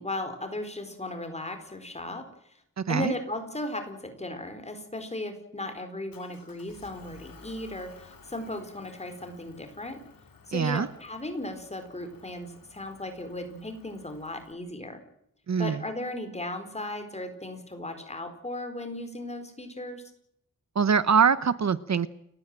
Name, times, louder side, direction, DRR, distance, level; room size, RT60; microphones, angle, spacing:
voice 1, 0.0-2.6 2.9-10.0 10.5-15.0 15.6-20.0, left 1 dB, 20° left, 7 dB, 4.4 m, -36 dB
voice 2, 2.8-3.1 10.5-10.9 15.5-15.8 20.7-22.1, right 6 dB, 55° right, 14 dB, 1.0 m, -23 dB
Motor vehicle (road) / Engine, 6.1-14.5, left 5 dB, 90° left, 3.1 m, -54 dB
29.5 x 15.0 x 9.0 m, 0.76 s
wide cardioid pair, 165°, 33 cm